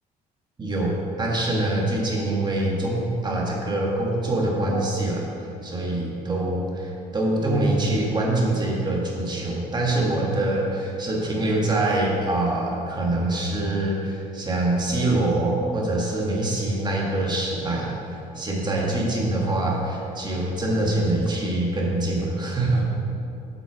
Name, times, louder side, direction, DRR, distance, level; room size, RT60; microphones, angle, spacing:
voice 1, 0.6-5.3 5.6-22.9, right 2 dB, 25° right, -2 dB, 1.7 m, -24 dB
7.8 x 6.1 x 4.7 m, 2.7 s
cardioid pair, 110°, 17 cm